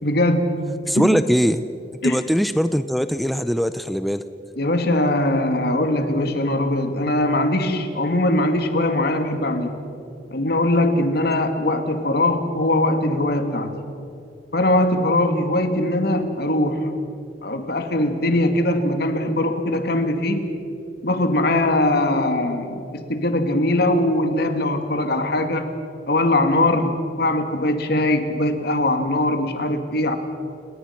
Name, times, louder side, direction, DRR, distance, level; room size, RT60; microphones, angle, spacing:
voice 1, 0.0-0.6 1.0-1.2 2.0-2.2 4.6-9.8 10.3-13.8 14.5-16.9 17.4-20.5 21.0-25.8 26.1-30.2, left 1 dB, 65° left, 6 dB, 2.2 m, -21 dB
voice 2, 0.9-1.6 2.0-4.2, equal, ahead, 11 dB, 0.5 m, -21 dB
30.0 x 18.5 x 5.9 m, 2.7 s
head